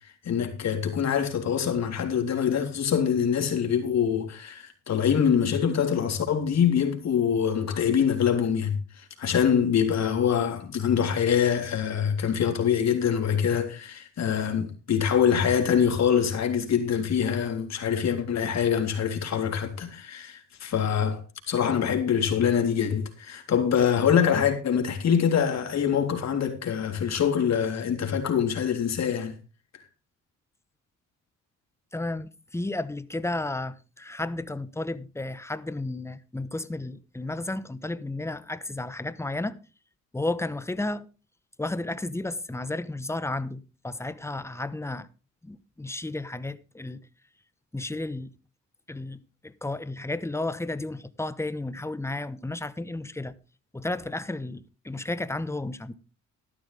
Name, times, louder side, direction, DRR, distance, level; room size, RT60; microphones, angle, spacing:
voice 1, 0.2-21.2 21.5-29.3, left 8 dB, 60° left, 3.5 m, -24 dB
voice 2, 31.9-39.6 40.1-41.1 41.6-45.1 45.4-47.0 47.7-48.3 48.9-53.3 53.7-55.9, left 2 dB, 10° left, 1.1 m, -33 dB
13.5 x 11.5 x 3.5 m
cardioid pair, 90°, 30 cm